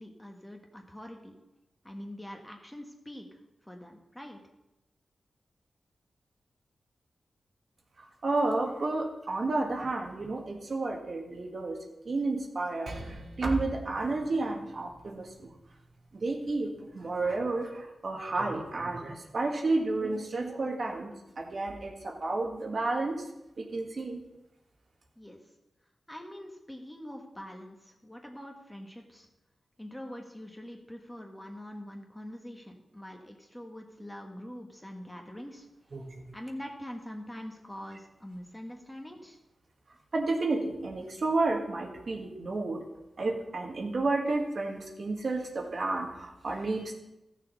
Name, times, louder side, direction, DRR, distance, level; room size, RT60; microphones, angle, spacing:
voice 1, 0.0-1.4 1.8-3.3 3.6-4.4 25.2-25.4 26.1-29.3 29.8-35.7 36.3-39.4, equal, 10° left, 2 dB, 1.5 m, -44 dB
voice 2, 8.2-11.8 12.0-12.9 13.4-15.3 16.2-23.2 23.6-24.2 35.9-36.2 40.1-42.8 43.2-46.9, right 2 dB, 55° right, 1 dB, 1.5 m, -31 dB
Percussion, 12.9-17.6, right 1 dB, 85° right, 1.7 m, -49 dB
14.5 x 6.6 x 4.0 m, 0.93 s
wide cardioid pair, 85°, 0 cm